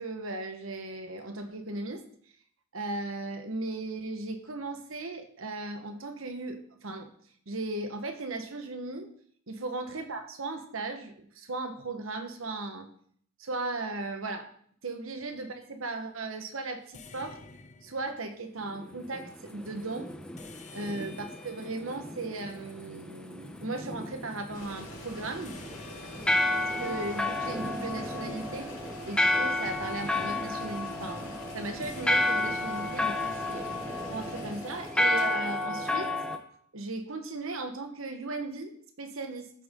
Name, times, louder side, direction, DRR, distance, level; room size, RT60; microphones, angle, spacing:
voice 1, 0.0-2.0 2.7-7.1 7.5-9.1 9.5-12.9 13.4-14.5 14.8-17.4 17.8-20.1 20.7-25.6 26.6-28.8 29.1-33.8 34.1-36.1 36.7-39.5, right 2 dB, 70° right, 6 dB, 1.3 m, -37 dB
sound 1, 15.2-15.5 16.9-18.5 20.4-23.4 25.4-28.8 29.7-30.7 31.8-32.3, left 4 dB, 35° left, 0.9 m, -52 dB
sound 2, 18.7-36.4, left 2 dB, 5° left, 0.8 m, -32 dB
sound 3, 24.5-35.6, left 1 dB, 65° left, 4.2 m, -45 dB
14.5 x 7.8 x 3.8 m, 0.62 s
head